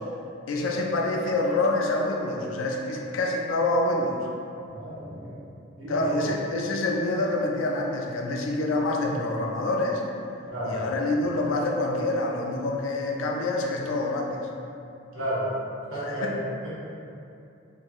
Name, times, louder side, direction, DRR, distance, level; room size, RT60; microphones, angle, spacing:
voice 1, 0.5-4.2 5.9-10.0 10.7-14.5 16.0-16.4, left 2 dB, 80° left, 0 dB, 0.4 m, -26 dB
voice 2, 4.7-5.3 5.8-6.2 10.5-10.8 15.1-15.5 15.9-16.7, equal, 85° right, -10 dB, 1.0 m, -32 dB
2.9 x 2.6 x 2.3 m, 2.6 s
head